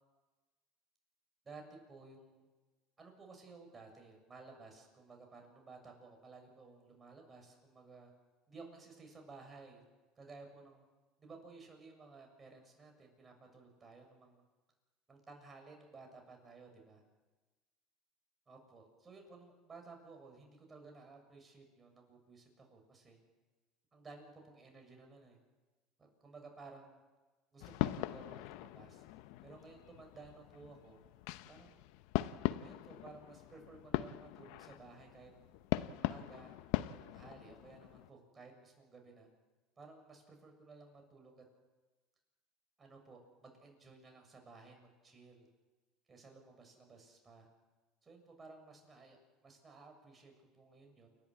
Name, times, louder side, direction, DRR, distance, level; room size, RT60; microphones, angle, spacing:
voice 1, 1.9-2.5 3.0-8.1 8.5-9.8 10.2-10.8 11.2-14.4 15.1-17.0 18.5-23.2 23.9-25.4 26.0-27.0 27.5-29.0 29.4-31.0 31.5-31.8 32.6-35.3 35.9-36.5 37.0-39.3 39.8-41.4 42.8-45.5 46.1-47.5 48.0-49.2 49.4-51.1, right 3 dB, 25° right, 3 dB, 7.1 m, -56 dB
sound 1, 27.6-38.1, left 16 dB, 75° left, 0.8 m, -40 dB
29.0 x 12.5 x 8.5 m, 1.2 s
supercardioid pair, 95°, 0 cm